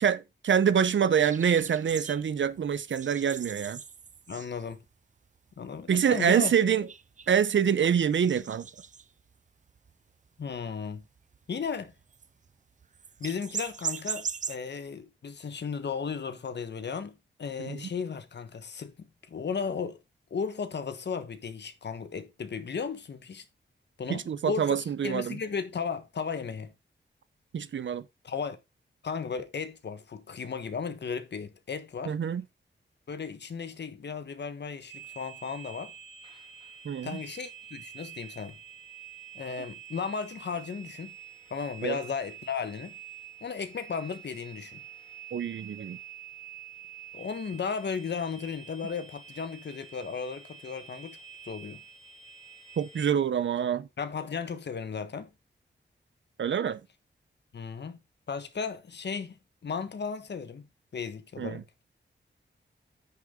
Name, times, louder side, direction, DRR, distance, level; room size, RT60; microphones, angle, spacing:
voice 1, 0.0-3.8 5.9-6.9 7.3-8.7 17.6-17.8 24.1-25.4 27.5-28.0 32.1-32.4 36.8-37.2 41.8-42.0 45.3-46.0 52.8-53.9 56.4-56.8 61.4-61.6, right 8 dB, 80° right, 0.8 m, -26 dB
sound 1, 1.2-4.9 5.3-5.4 5.7-5.8 6.3-7.5 7.9-9.3 9.7-9.9 10.2-10.6 11.0-12.5 12.8-14.6, right 6 dB, 40° right, 0.5 m, -40 dB
voice 2, 4.3-4.8 5.6-6.5 10.4-11.0 11.5-11.9 13.2-20.0 20.3-23.4 24.0-26.7 28.2-28.6 29.0-32.2 33.1-35.9 37.0-38.6 39.3-41.1 41.5-42.9 43.4-44.8 47.1-51.2 51.4-51.8 54.0-55.3 57.5-58.0 58.3-60.7 60.9-61.6, left 6 dB, 65° left, 1.3 m, -35 dB
sound 2, 34.9-53.1, right 8 dB, 25° left, 2.4 m, -48 dB
9.7 x 6.7 x 3.7 m
wide cardioid pair, 145°, 19 cm